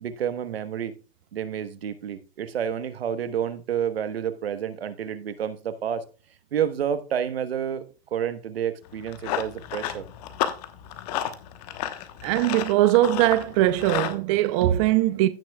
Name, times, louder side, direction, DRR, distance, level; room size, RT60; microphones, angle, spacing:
voice 1, 0.0-0.9 1.3-6.0 6.5-7.8 8.1-10.0, right 8 dB, 80° right, 1.2 m, -29 dB
Run, 8.8-14.2, left 11 dB, 40° left, 1.1 m, -32 dB
voice 2, 12.2-15.3, right 15 dB, 35° right, 0.6 m, -21 dB
15.5 x 6.1 x 2.3 m
hypercardioid pair, 135°, 30 cm